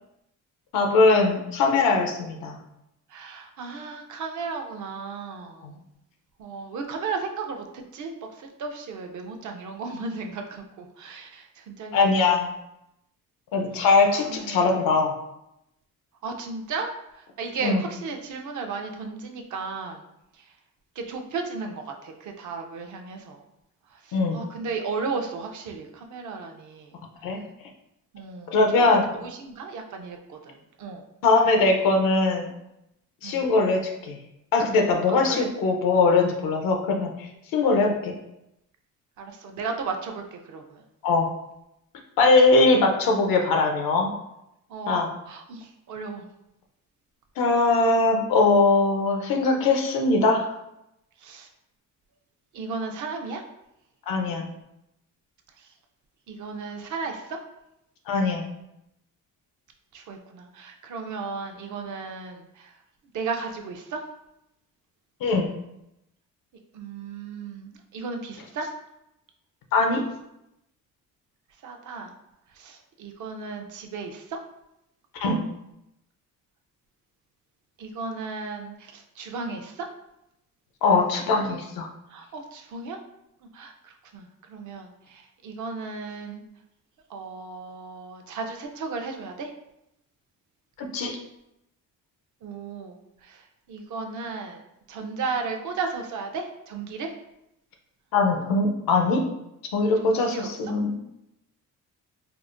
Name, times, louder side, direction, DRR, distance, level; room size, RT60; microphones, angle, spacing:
voice 1, 0.7-2.6 5.6-5.7 11.9-12.5 13.5-15.1 17.6-17.8 24.1-24.4 27.2-27.4 28.5-29.1 31.2-32.5 33.2-34.2 34.5-37.3 37.5-38.1 41.0-41.3 42.2-44.1 44.9-45.1 47.4-50.4 54.1-54.5 58.1-58.4 65.2-65.5 69.7-70.0 75.2-75.4 80.8-81.9 90.9-91.2 98.1-99.2 99.7-101.0, left 3 dB, 85° left, 3 dB, 0.7 m, -21 dB
voice 2, 3.1-5.8 6.4-8.1 8.4-12.2 14.1-14.6 16.2-16.9 17.4-20.0 21.0-23.4 24.3-26.9 28.1-31.0 33.2-33.4 35.1-35.5 39.2-40.6 44.7-45.0 45.3-46.2 51.2-51.5 52.5-53.4 56.3-57.4 59.9-62.7 63.1-64.0 66.7-68.7 71.6-72.1 72.6-74.4 77.8-79.9 82.1-83.0 83.5-86.4 87.1-89.5 92.4-93.0 93.3-93.4 93.7-94.6 94.9-97.1 100.0-100.5, right 4 dB, 60° right, 3 dB, 0.6 m, -35 dB
4.6 x 2.1 x 2.5 m, 0.85 s
cardioid pair, 95°, 34 cm